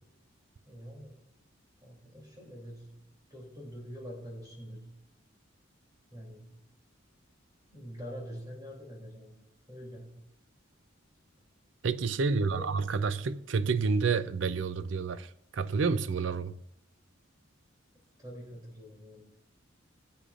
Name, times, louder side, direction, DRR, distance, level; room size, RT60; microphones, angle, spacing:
voice 1, 0.7-1.2 1.8-5.0 6.1-6.6 7.7-9.4 9.7-10.3 12.3-12.9 18.2-19.2, equal, 20° right, 3.0 m, -45 dB
voice 2, 11.8-16.6, right 5 dB, 65° right, 0.5 m, -29 dB
17.0 x 8.5 x 2.5 m
head